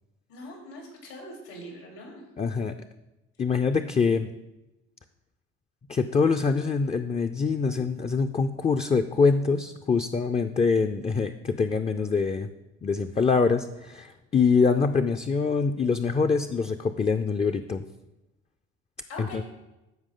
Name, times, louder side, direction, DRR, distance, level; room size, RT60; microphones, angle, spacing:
voice 1, 0.3-2.2 19.1-19.4, left 1 dB, 85° left, -1 dB, 3.3 m, -42 dB
voice 2, 2.4-2.7 3.4-4.3 5.9-12.5 12.8-17.8 19.2-19.4, left 5 dB, 20° left, 7 dB, 0.4 m, -24 dB
13.5 x 4.8 x 3.8 m, 1.0 s
supercardioid pair, 65°, 30 cm